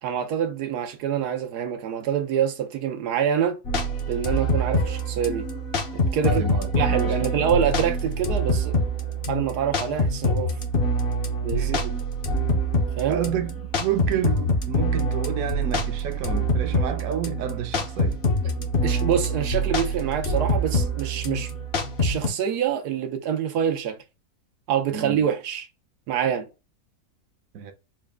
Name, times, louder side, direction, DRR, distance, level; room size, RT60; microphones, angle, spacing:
voice 1, 0.0-3.6 4.1-5.5 5.9-6.5 6.8-8.8 9.3-10.5 11.4-11.9 13.0-13.2 18.6-21.5 22.0-24.0 24.7-25.7 26.1-26.5, right 8 dB, 85° right, 1.2 m, -26 dB
sound 1, 3.6-22.3, equal, 50° left, 0.8 m, -25 dB
voice 2, 6.2-7.5 11.5-11.8 13.1-18.2 24.9-25.2 27.5-27.7, right 9 dB, 65° right, 1.0 m, -30 dB
4.1 x 2.2 x 3.5 m
omnidirectional pair, 1.6 m